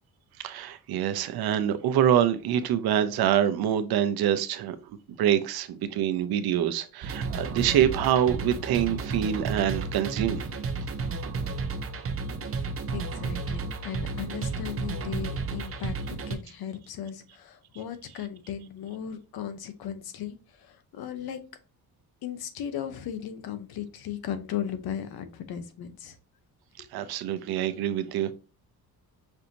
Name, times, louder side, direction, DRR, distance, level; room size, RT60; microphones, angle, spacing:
voice 1, 0.4-10.4 26.8-28.3, right 10 dB, 90° right, 0.6 m, -26 dB
sound 1, 7.0-16.4, right 4 dB, 40° right, 0.6 m, -32 dB
voice 2, 12.6-15.9 16.3-21.4 22.2-26.1, left 9 dB, 85° left, 0.8 m, -36 dB
5.5 x 2.6 x 2.8 m
cardioid pair, 100°, 36 cm